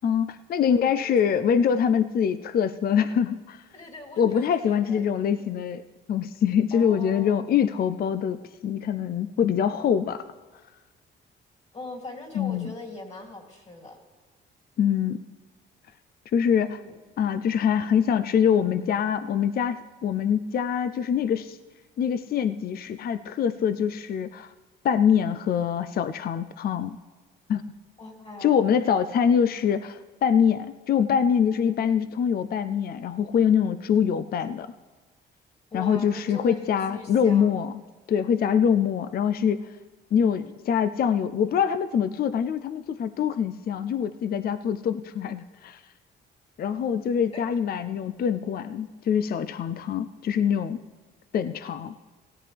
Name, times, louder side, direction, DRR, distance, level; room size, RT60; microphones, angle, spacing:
voice 1, 0.0-3.6 4.2-5.8 6.1-10.2 12.3-12.7 14.8-15.2 16.3-16.8 17.2-21.6 22.0-24.5 24.8-27.0 27.5-27.6 28.4-34.7 35.7-37.8 38.1-39.6 40.1-45.8 46.6-50.8 51.3-51.9, left 8 dB, 50° left, 12 dB, 0.5 m, -24 dB
voice 2, 0.6-1.3 3.7-5.5 6.7-7.5 11.7-14.0 16.5-17.0 28.0-28.6 35.7-37.5 47.3-47.4, left 2 dB, 35° left, 1 dB, 2.7 m, -42 dB
17.0 x 13.0 x 3.4 m, 1.3 s
cardioid pair, 90°, 20 cm